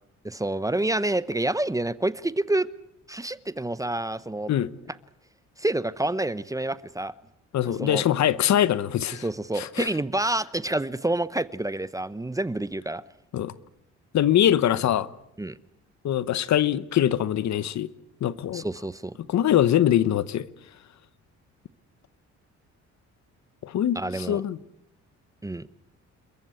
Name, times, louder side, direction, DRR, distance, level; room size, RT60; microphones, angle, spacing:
voice 1, 0.2-2.7 3.1-4.5 5.6-7.1 7.7-8.0 9.2-13.0 15.4-15.6 18.5-19.2 23.9-24.4 25.4-25.7, right 1 dB, 10° right, 0.8 m, -28 dB
voice 2, 7.5-9.2 9.6-9.9 13.3-13.5 14.1-15.1 16.0-17.9 18.2-18.6 19.3-20.5 23.6-24.6, left 11 dB, 65° left, 1.0 m, -23 dB
28.0 x 14.5 x 9.7 m
cardioid pair, 90°, 30 cm